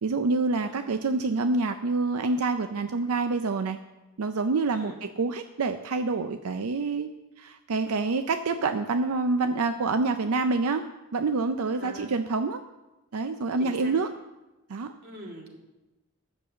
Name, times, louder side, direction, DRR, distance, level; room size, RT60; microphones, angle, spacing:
voice 1, 0.0-3.8 4.2-7.1 7.4-10.8 11.1-12.6 13.1-14.1 14.7-14.9, right 3 dB, 90° right, 8 dB, 0.5 m, -27 dB
voice 2, 11.7-12.1 13.6-13.9 15.0-15.6, right 1 dB, 50° right, -1 dB, 2.4 m, -42 dB
10.0 x 6.8 x 7.4 m, 1.0 s
head